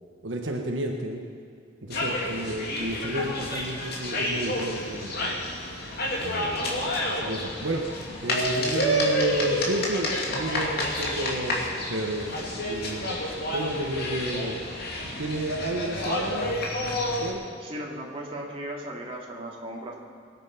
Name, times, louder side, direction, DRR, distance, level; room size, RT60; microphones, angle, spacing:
voice 1, 0.2-1.2 1.8-5.4 6.2-7.8 8.2-11.6 11.9-13.2 13.5-14.6 15.0-16.6 17.2-17.5, right 1 dB, 75° right, 2 dB, 1.3 m, -31 dB
sound 1, 1.9-17.3, left 1 dB, 55° left, 2.4 m, -29 dB
voice 2, 17.6-20.0, right 1 dB, 30° right, -2 dB, 2.3 m, -36 dB
21.5 x 9.2 x 5.8 m, 2.4 s
head